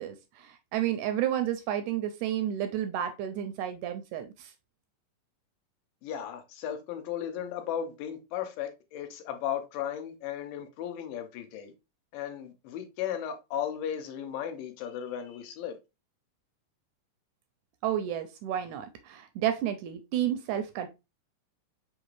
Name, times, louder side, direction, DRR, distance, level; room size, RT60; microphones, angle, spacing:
voice 1, 0.0-4.5 17.8-20.9, right 11 dB, 80° right, 1.8 m, -31 dB
voice 2, 6.0-11.7 12.1-15.8, left 9 dB, 90° left, 2.4 m, -35 dB
5.6 x 2.4 x 3.0 m
omnidirectional pair, 3.8 m